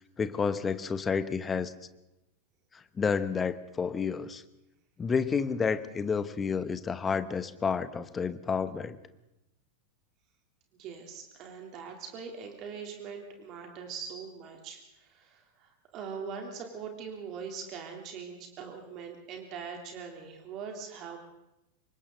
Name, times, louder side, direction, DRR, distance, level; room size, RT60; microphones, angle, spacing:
voice 1, 0.2-1.7 2.7-4.4 5.0-9.0, left 5 dB, 20° left, 13 dB, 1.2 m, -30 dB
voice 2, 10.8-21.2, right 6 dB, 35° right, 2 dB, 3.4 m, -42 dB
27.0 x 24.0 x 4.0 m, 0.92 s
figure-of-eight pair, 90°, 0 cm